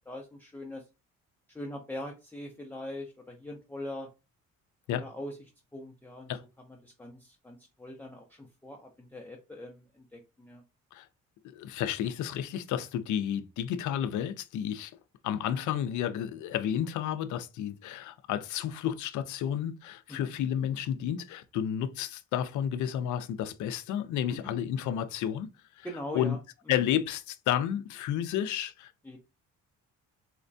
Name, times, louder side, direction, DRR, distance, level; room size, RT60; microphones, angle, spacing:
voice 1, 0.1-0.8 1.5-4.1 4.9-5.4 5.7-6.3 6.8-10.6 20.1-20.3 24.3-24.5 25.8-26.4 29.0-29.2, left 1 dB, 5° left, 0.6 m, -42 dB
voice 2, 11.4-15.0 15.2-25.9 26.1-26.4 26.7-28.9, left 10 dB, 80° left, 0.5 m, -31 dB
4.3 x 2.2 x 2.6 m
cardioid pair, 90°, 30 cm